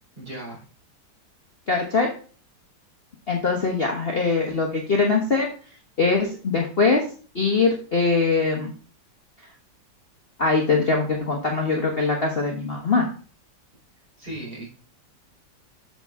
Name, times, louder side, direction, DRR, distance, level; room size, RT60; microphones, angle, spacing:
voice 1, 0.2-0.6 14.2-14.7, right 1 dB, 30° right, -4 dB, 4.4 m, -36 dB
voice 2, 1.7-2.1 3.3-5.5 6.0-7.0 7.3-8.7 10.4-13.1, left 4 dB, 40° left, 1 dB, 1.2 m, -22 dB
8.6 x 7.0 x 3.5 m, 0.40 s
omnidirectional pair, 1.9 m